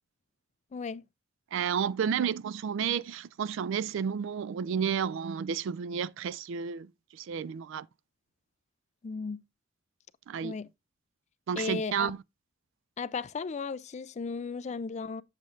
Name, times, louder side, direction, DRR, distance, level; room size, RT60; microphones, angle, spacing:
voice 1, 0.7-1.0 9.0-9.4 10.4-10.7 11.6-12.1 13.0-15.2, left 4 dB, 35° left, 0.4 m, -35 dB
voice 2, 1.5-6.9 7.1-7.9 10.3-10.5 11.5-12.2, right 7 dB, 65° right, 0.3 m, -31 dB
7.7 x 7.3 x 2.5 m
head